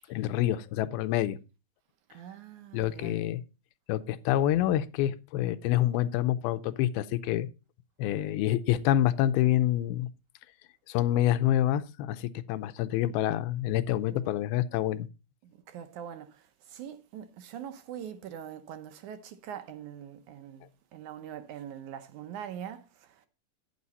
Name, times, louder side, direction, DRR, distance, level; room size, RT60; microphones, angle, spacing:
voice 1, 0.1-1.4 2.7-3.4 3.9-7.5 8.0-10.1 10.9-15.1, left 12 dB, 85° left, 2.5 m, -27 dB
voice 2, 2.1-3.2 14.1-14.3 15.4-20.7 20.9-23.2, right 9 dB, 75° right, 1.8 m, -43 dB
11.0 x 8.7 x 4.1 m
omnidirectional pair, 4.4 m